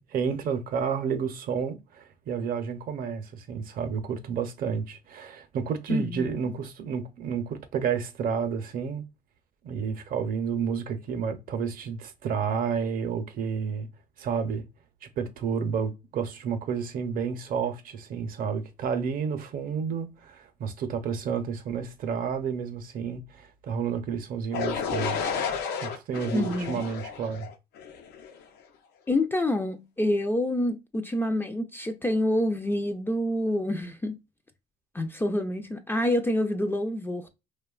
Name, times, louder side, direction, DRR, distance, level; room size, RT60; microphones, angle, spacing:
voice 1, 0.0-9.1 9.6-13.9 14.2-14.7 15.0-27.5, right 6 dB, 60° right, 0.6 m, -31 dB
voice 2, 5.9-6.3 26.3-26.8 29.1-34.2 34.9-37.3, left 1 dB, 15° left, 0.3 m, -27 dB
sound 1, 24.5-28.4, left 6 dB, 75° left, 0.5 m, -32 dB
2.8 x 2.2 x 2.3 m
cardioid pair, 110°, 17 cm